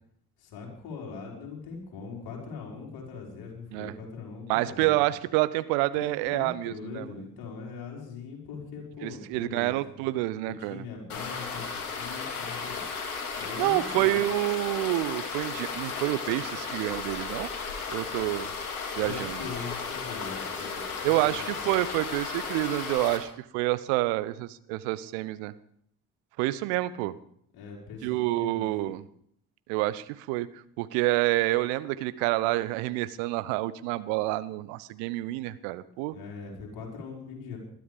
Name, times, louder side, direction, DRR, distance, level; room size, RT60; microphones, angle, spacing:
voice 1, 0.4-4.9 5.9-9.8 10.6-12.8 13.4-14.2 19.0-20.9 21.2-21.5 27.5-28.7 36.1-37.6, left 5 dB, 55° left, -1 dB, 5.1 m, -41 dB
voice 2, 4.5-7.1 9.0-10.8 13.3-17.5 17.9-18.5 19.0-19.4 21.0-25.5 26.4-27.1 28.0-29.0 29.7-36.1, right 17 dB, 65° right, 15 dB, 0.9 m, -28 dB
sound 1, 11.1-23.2, left 5 dB, 75° left, 2.4 m, -35 dB
20.5 x 13.0 x 5.2 m, 0.68 s
figure-of-eight pair, 45°, 44 cm